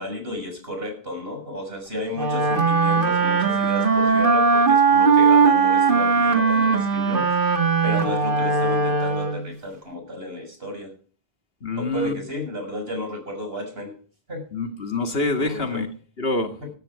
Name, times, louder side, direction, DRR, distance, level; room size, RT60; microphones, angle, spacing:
voice 1, 0.0-7.4 7.8-10.9 11.8-14.0 14.3-14.5 15.4-15.8 16.6-16.7, left 1 dB, 70° right, 7.0 m, -33 dB
Wind instrument woodwind instrument, 2.1-9.5, right 4 dB, 55° right, 1.9 m, -19 dB
voice 2, 11.6-12.2 14.5-15.9 16.2-16.6, left 2 dB, 75° left, 2.3 m, -26 dB
16.0 x 14.0 x 4.9 m
omnidirectional pair, 1.0 m